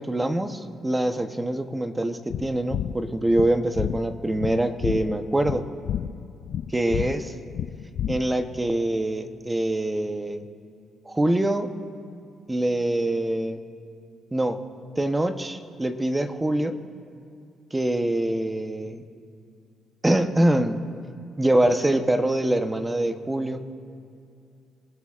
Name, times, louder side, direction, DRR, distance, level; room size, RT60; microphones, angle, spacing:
voice 1, 0.0-5.7 6.7-7.3 8.1-10.4 11.1-11.7 12.5-13.6 14.3-14.6 15.0-16.8 17.7-19.0 20.0-20.8 21.4-23.6, right 1 dB, 15° right, 7 dB, 0.9 m, -24 dB
sound 1, 2.3-8.6, left 9 dB, 65° left, 0.3 m, -31 dB
25.5 x 18.5 x 2.5 m, 2.5 s
cardioid pair, 90°, 0 cm